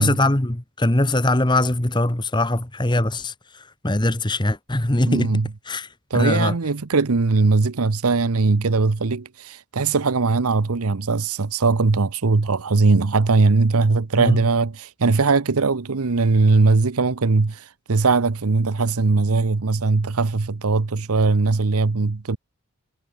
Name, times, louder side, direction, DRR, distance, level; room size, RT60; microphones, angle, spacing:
voice 1, 0.0-3.3 3.8-5.3 5.7-5.9 6.1-6.5 14.2-14.4, left 1 dB, 20° left, 1.3 m, -21 dB
voice 2, 5.0-5.5 6.1-22.4, right 3 dB, 80° right, 0.8 m, -20 dB
head